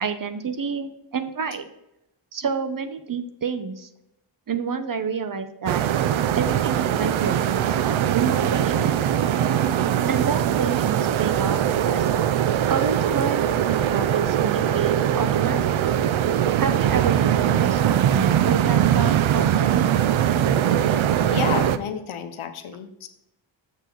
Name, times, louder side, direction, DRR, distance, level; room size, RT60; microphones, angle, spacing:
voice 1, 0.0-1.7 2.3-3.9 4.5-5.8 6.3-8.9 10.1-11.6 11.8-12.1 12.7-15.7 16.6-19.9, right 6 dB, 40° right, 10 dB, 0.9 m, -29 dB
sound 1, 5.7-21.8, right 10 dB, 70° right, 0.6 m, -21 dB
voice 2, 21.3-23.1, left 8 dB, 80° left, 7 dB, 1.0 m, -30 dB
7.1 x 6.6 x 3.9 m, 0.85 s
cardioid pair, 80°, 49 cm